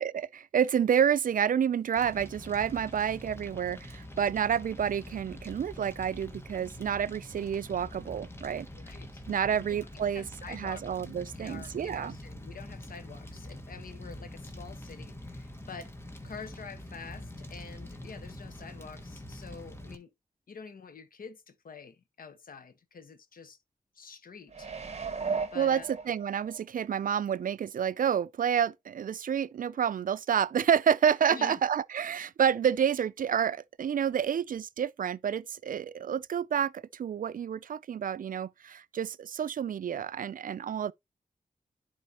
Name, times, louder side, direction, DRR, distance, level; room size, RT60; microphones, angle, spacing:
voice 1, 0.0-8.7 9.3-12.2 25.6-40.9, right 8 dB, 70° right, 0.4 m, -29 dB
Fire, 2.0-20.0, left 1 dB, 15° left, 1.6 m, -45 dB
voice 2, 8.7-9.2 9.5-9.9 10.1-10.8 11.3-15.9 16.2-20.1 20.5-23.6 23.9-24.7 25.5-25.9 31.3-31.6, left 5 dB, 75° left, 1.1 m, -47 dB
sound 1, 24.5-26.6 27.1-27.2, right 5 dB, 45° right, 1.1 m, -35 dB
11.0 x 4.9 x 2.9 m
wide cardioid pair, 85°, 15 cm